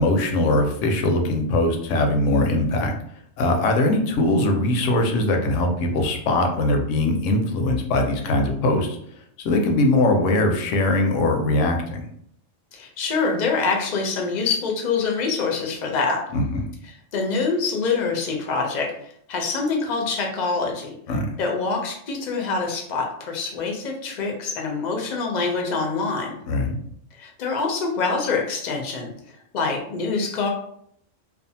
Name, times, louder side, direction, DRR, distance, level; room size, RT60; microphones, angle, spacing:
voice 1, 0.0-2.9 3.4-9.0 9.4-12.1 16.3-16.7 21.1-21.3 26.5-26.8, left 2 dB, 80° left, 3 dB, 0.9 m, -21 dB
voice 2, 12.7-16.2 16.8-21.0 21.4-26.4 27.1-30.5, left 4 dB, 50° left, 1 dB, 0.5 m, -25 dB
2.5 x 2.3 x 2.6 m, 0.69 s
omnidirectional pair, 1.3 m